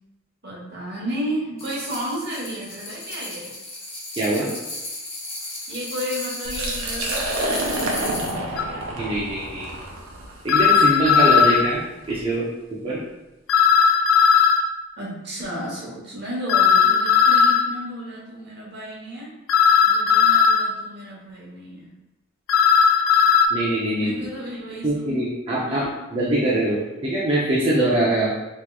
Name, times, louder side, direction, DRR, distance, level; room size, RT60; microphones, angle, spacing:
voice 1, 0.4-3.5 5.7-8.9 15.0-19.3 19.8-21.9 24.0-25.1 25.7-25.9, equal, 55° right, -5 dB, 1.0 m, -33 dB
sound 1, 1.6-8.4, left 1 dB, 30° left, 0.9 m, -34 dB
voice 2, 4.2-4.5 9.0-9.8 10.4-11.8 12.1-12.5 12.8-13.0 23.5-24.1 24.8-28.3, right 1 dB, 30° right, -8 dB, 0.5 m, -23 dB
Liquid, 6.4-12.2, right 1 dB, 85° right, 0.6 m, -29 dB
sound 2, 8.6-8.7 10.5-11.6 13.5-14.6 16.5-17.6 19.5-20.6 22.5-23.5, left 6 dB, 75° left, 0.3 m, -16 dB
3.5 x 2.9 x 2.2 m, 1.0 s
head